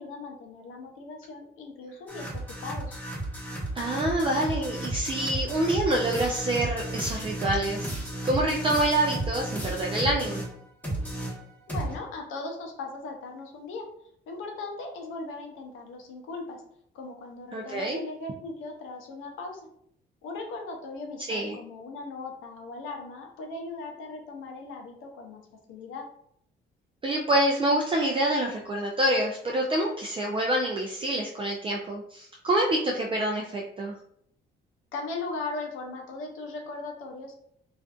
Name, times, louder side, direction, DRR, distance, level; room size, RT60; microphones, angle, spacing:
voice 1, 0.0-3.0 11.7-13.8 14.3-16.6 16.9-19.6 20.2-25.4 25.7-26.0 34.9-37.4, left 3 dB, 90° left, 3 dB, 0.6 m, -38 dB
sound 1, 2.1-10.5 10.8-11.9, right 1 dB, 10° left, 0.9 m, -33 dB
voice 2, 3.8-10.4 17.5-18.0 21.3-21.6 27.0-33.9, right 1 dB, 25° right, -1 dB, 0.4 m, -27 dB
2.4 x 2.4 x 2.3 m, 0.70 s
cardioid pair, 90°, 20 cm